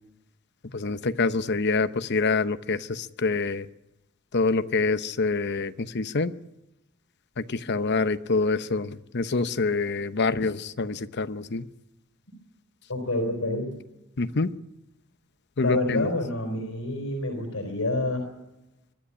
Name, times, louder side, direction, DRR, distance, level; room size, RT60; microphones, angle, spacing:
voice 1, 0.7-3.7 4.3-6.3 7.4-11.6 14.2-14.5 15.6-16.1, left 3 dB, 55° left, 12 dB, 0.8 m, -26 dB
voice 2, 12.9-13.7 15.6-18.3, left 2 dB, 80° left, 3 dB, 4.1 m, -28 dB
22.5 x 13.0 x 9.9 m, 0.96 s
head